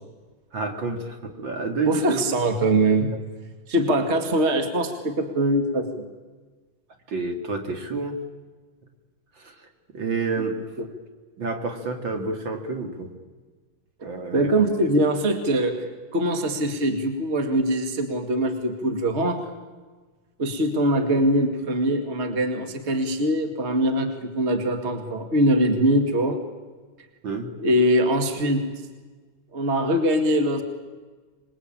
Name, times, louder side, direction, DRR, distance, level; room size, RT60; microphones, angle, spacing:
voice 1, 0.5-2.2 3.1-3.2 7.1-8.2 9.4-9.6 9.9-10.7 11.4-13.1 14.0-14.9 27.2-27.5, right 3 dB, 60° right, 5 dB, 2.9 m, -29 dB
voice 2, 1.9-3.2 3.7-6.0 14.3-19.4 20.4-26.4 27.6-28.7 29.5-30.6, right 1 dB, 30° right, 6 dB, 2.3 m, -22 dB
26.5 x 21.0 x 8.8 m, 1.3 s
omnidirectional pair, 2.4 m